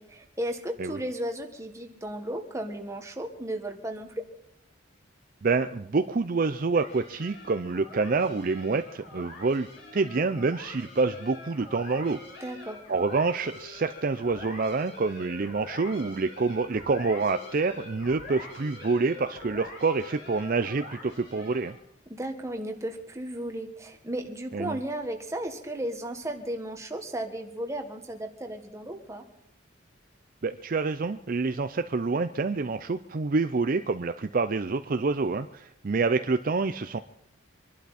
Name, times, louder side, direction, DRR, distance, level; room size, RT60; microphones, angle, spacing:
voice 1, 0.0-4.2 12.4-12.8 22.1-29.2, right 1 dB, 15° right, 4 dB, 1.5 m, -35 dB
voice 2, 5.4-9.7 9.9-12.2 12.9-21.7 24.5-24.8 30.4-37.0, right 4 dB, 45° right, 9 dB, 0.5 m, -27 dB
sound 1, 6.7-21.9, left 2 dB, 65° left, 5.7 m, -45 dB
25.0 x 11.5 x 4.2 m, 0.76 s
head